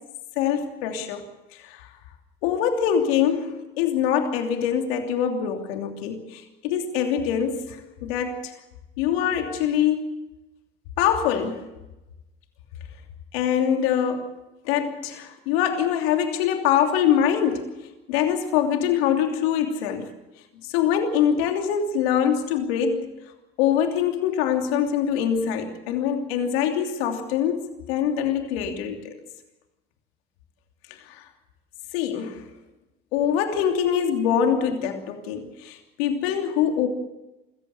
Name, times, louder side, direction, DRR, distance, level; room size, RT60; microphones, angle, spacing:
voice 1, 0.4-1.2 1.6-1.9 2.4-8.5 9.0-10.2 11.0-11.6 13.3-14.3 14.6-17.7 18.1-20.1 20.6-23.1 23.6-29.2 31.0-31.3 31.9-32.5 33.1-36.9, left 8 dB, 80° left, 4 dB, 3.0 m, -24 dB
25.5 x 14.5 x 8.0 m, 0.98 s
hypercardioid pair, 75°, 30 cm